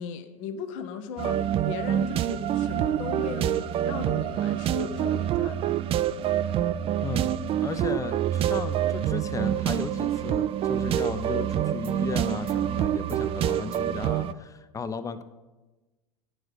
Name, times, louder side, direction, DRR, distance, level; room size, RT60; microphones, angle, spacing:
voice 1, 0.0-5.9, left 7 dB, 60° left, 9 dB, 0.8 m, -37 dB
sound 1, 1.2-14.3, right 11 dB, 30° right, 0.4 m, -26 dB
voice 2, 7.0-15.2, left 5 dB, 15° left, 11 dB, 0.6 m, -35 dB
9.4 x 6.3 x 5.0 m, 1.2 s
hypercardioid pair, 85°, 19 cm